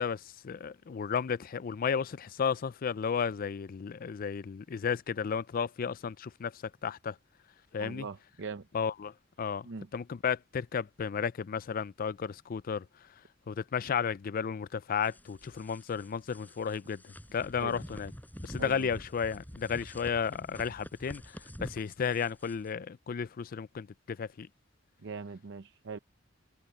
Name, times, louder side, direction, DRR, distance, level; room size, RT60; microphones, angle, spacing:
voice 1, 0.0-7.2 7.7-8.1 8.7-9.1 9.4-9.7 9.9-12.9 13.5-18.1 18.4-21.2 21.6-24.5, left 6 dB, 45° left, 0.4 m, -33 dB
voice 2, 7.8-8.7 9.6-9.9 17.6-17.8 18.6-18.9 25.0-26.0, right 4 dB, 65° right, 0.7 m, -41 dB
sound 1, 15.0-22.7, equal, 10° left, 4.5 m, -47 dB
head